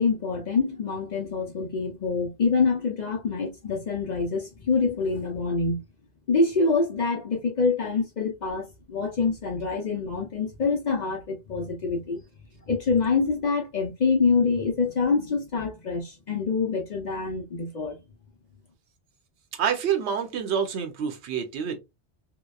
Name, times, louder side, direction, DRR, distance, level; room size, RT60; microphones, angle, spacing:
voice 1, 0.0-5.8 6.3-12.2 12.7-18.0, left 4 dB, 50° left, 0.6 m, -26 dB
voice 2, 19.5-21.8, right 7 dB, 75° right, 0.9 m, -27 dB
2.8 x 2.1 x 2.2 m
omnidirectional pair, 1.1 m